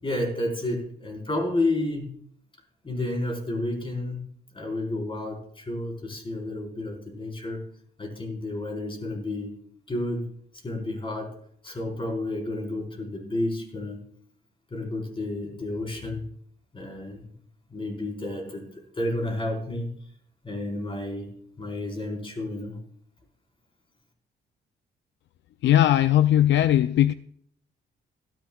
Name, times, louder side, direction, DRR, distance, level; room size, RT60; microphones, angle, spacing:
voice 1, 0.0-2.1 2.8-4.3 4.5-7.7 8.0-9.5 9.9-10.3 10.6-11.3 11.6-14.0 14.7-16.3 16.7-17.3 17.7-20.0 20.4-22.8, left 1 dB, 25° left, 4.4 m, -31 dB
voice 2, 25.6-27.1, left 12 dB, 65° left, 0.4 m, -19 dB
16.5 x 14.0 x 2.4 m
cardioid pair, 90°, 20 cm